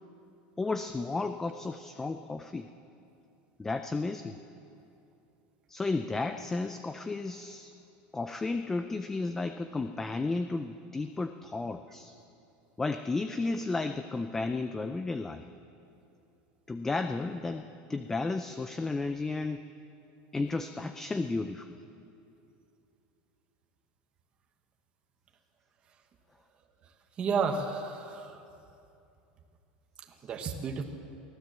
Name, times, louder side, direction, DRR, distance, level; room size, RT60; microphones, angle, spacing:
voice 1, 0.6-2.7 3.6-4.4 5.7-7.7 8.1-12.1 12.8-15.5 16.7-19.6 20.3-21.7, left 3 dB, 10° left, 8 dB, 0.4 m, -33 dB
voice 2, 27.2-28.4 30.2-30.8, right 5 dB, 25° right, 4 dB, 1.2 m, -31 dB
23.5 x 15.5 x 7.4 m, 2.7 s
cardioid pair, 175°, 4 cm